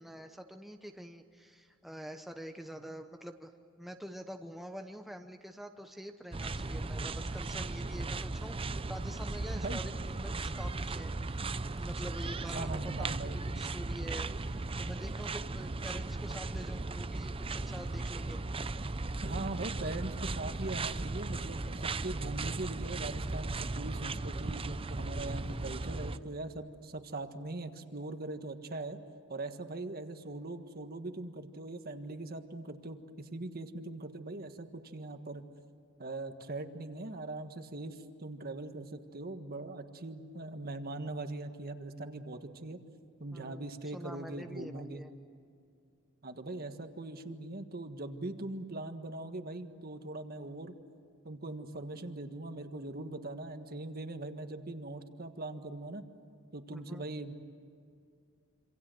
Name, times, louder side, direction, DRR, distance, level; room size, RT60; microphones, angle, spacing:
voice 1, 0.0-3.5 3.8-11.4 11.7-18.4 43.3-45.1 56.7-57.1, equal, ahead, 5 dB, 0.9 m, -46 dB
sound 1, 6.3-26.2, right 3 dB, 25° right, 0.6 m, -37 dB
voice 2, 12.5-13.5 19.2-29.0 29.3-35.4 36.0-42.8 43.2-45.0 46.2-50.8 51.2-56.0 56.5-57.3, right 2 dB, 45° right, 7 dB, 1.6 m, -41 dB
27.0 x 26.0 x 7.8 m, 2.4 s
head